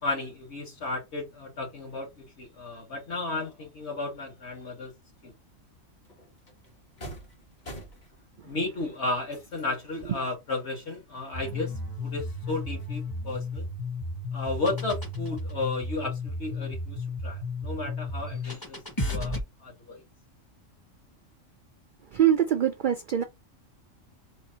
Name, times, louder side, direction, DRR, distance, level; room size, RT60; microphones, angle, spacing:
voice 1, 0.0-4.9 5.2-5.3 8.4-13.7 14.3-18.8 19.0-19.3 19.6-20.0, left 2 dB, 60° left, 1.9 m, -34 dB
sound 1, 5.7-5.8 6.0-9.9 10.3-10.4 10.9-12.4 12.8-14.0, equal, 35° left, 1.2 m, -48 dB
sound 2, 11.3-19.4, left 2 dB, 20° left, 0.7 m, -33 dB
voice 2, 22.1-23.2, right 10 dB, 70° right, 0.4 m, -24 dB
4.5 x 2.5 x 2.7 m
omnidirectional pair, 1.3 m